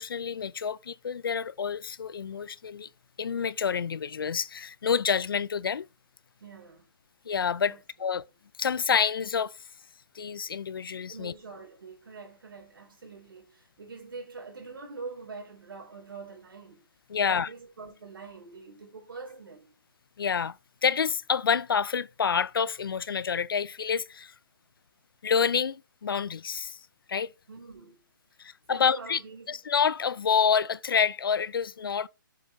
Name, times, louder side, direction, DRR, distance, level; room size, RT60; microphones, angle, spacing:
voice 1, 0.0-2.9 3.2-5.9 7.3-7.7 8.0-8.2 8.6-9.5 10.1-11.3 17.1-17.5 20.2-20.6 20.8-24.3 25.2-26.8 27.1-27.3 28.4-29.2 29.5-32.1, left 6 dB, 80° left, 0.5 m, -28 dB
voice 2, 6.4-6.9 7.7-7.8 11.1-16.8 17.2-19.7 27.5-28.0 28.7-29.6, right 4 dB, 80° right, 3.4 m, -44 dB
7.1 x 4.6 x 4.2 m
hypercardioid pair, 170°, 12 cm